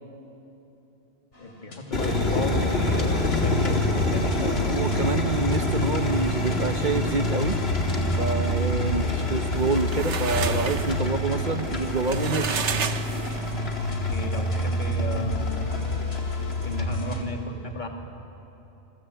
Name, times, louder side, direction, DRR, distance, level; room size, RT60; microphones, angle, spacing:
sound 1, 1.3-1.8 2.5-17.2, equal, 85° left, 3.3 m, -29 dB
voice 1, 1.4-4.7 9.0-9.3 13.5-15.8 16.5-17.9, left 2 dB, 40° left, 2 dB, 2.6 m, -35 dB
sound 2, 1.9-16.8, left 2 dB, 60° left, 2.5 m, -29 dB
voice 2, 4.7-7.6 8.2-12.6, right 3 dB, 45° right, 8 dB, 1.0 m, -27 dB
sound 3, 9.5-13.7, right 6 dB, 75° right, 1.3 m, -32 dB
28.0 x 24.5 x 8.1 m, 3.0 s
omnidirectional pair, 1.2 m